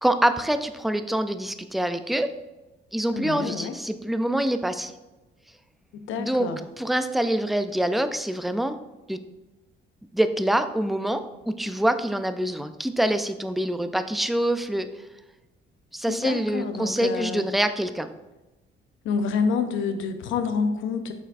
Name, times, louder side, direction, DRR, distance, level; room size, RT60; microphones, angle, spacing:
voice 1, 0.0-2.3 2.9-4.9 6.2-6.5 6.8-8.8 9.1-9.2 10.1-14.9 15.9-18.1, right 1 dB, ahead, 10 dB, 0.4 m, -25 dB
voice 2, 3.1-3.8 5.9-6.6 16.1-17.5 19.0-21.1, left 5 dB, 80° left, 8 dB, 0.7 m, -28 dB
7.3 x 5.7 x 2.5 m, 1.1 s
cardioid pair, 90°, 20 cm